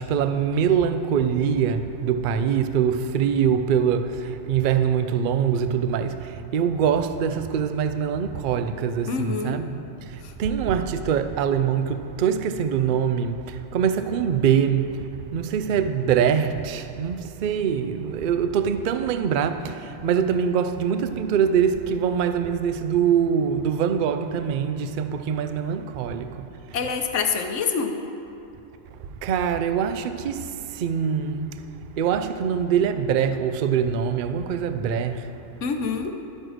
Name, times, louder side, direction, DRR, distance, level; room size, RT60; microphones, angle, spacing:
voice 1, 0.0-9.8 10.1-26.5 29.2-31.5 32.0-35.3, right 7 dB, 60° right, 0.5 m, -24 dB
voice 2, 9.1-9.6 10.2-10.3 26.7-27.9 35.6-36.1, left 5 dB, 70° left, 1.2 m, -26 dB
11.5 x 6.4 x 6.3 m
omnidirectional pair, 1.3 m